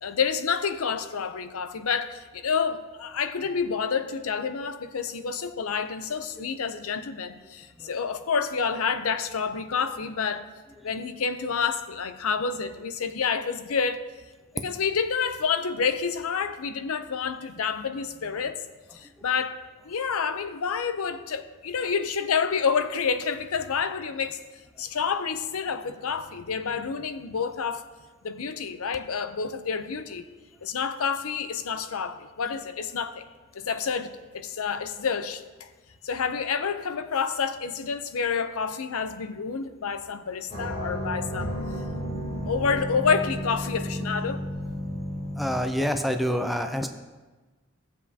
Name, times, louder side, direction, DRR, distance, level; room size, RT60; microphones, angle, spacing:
voice 1, 0.0-10.5 10.8-14.1 14.5-18.6 18.9-19.6 19.8-24.4 24.8-27.8 28.2-30.3 30.6-33.2 33.5-35.7 36.0-41.5 42.5-44.4, left 6 dB, 75° left, 0.6 m, -28 dB
sound 1, 40.5-45.6, equal, 30° left, 3.1 m, -32 dB
voice 2, 45.4-46.9, equal, ahead, 0.4 m, -26 dB
16.0 x 7.4 x 2.8 m
head